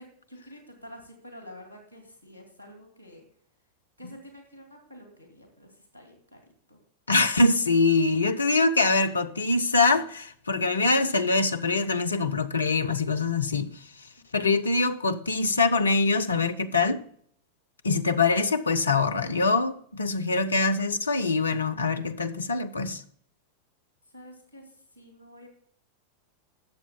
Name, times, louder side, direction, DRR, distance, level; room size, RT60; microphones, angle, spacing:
voice 1, 0.0-3.2 4.0-6.4 6.7-6.8 14.2-14.6 24.1-25.5, equal, 80° right, 2.5 m, -48 dB
voice 2, 7.1-13.8 14.3-17.0 17.8-23.0, left 3 dB, 75° left, 0.6 m, -24 dB
19.0 x 7.3 x 2.2 m
figure-of-eight pair, 90°, 0 cm